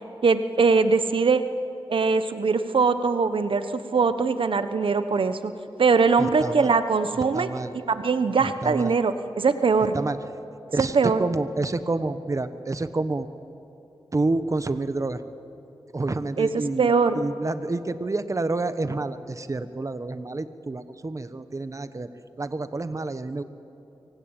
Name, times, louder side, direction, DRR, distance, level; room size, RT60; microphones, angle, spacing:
voice 1, 0.2-1.4 1.9-5.5 5.8-7.5 7.7-9.9 10.8-11.2 16.4-16.5 16.8-17.1, right 4 dB, 70° right, 10 dB, 1.2 m, -22 dB
voice 2, 6.2-6.7 7.3-7.7 8.4-8.9 9.9-10.2 10.7-13.3 14.1-15.2 15.9-16.9 17.1-22.1 22.4-23.4, right 2 dB, 35° right, 11 dB, 1.2 m, -28 dB
25.5 x 24.0 x 9.0 m, 2.9 s
cardioid pair, 65°, 9 cm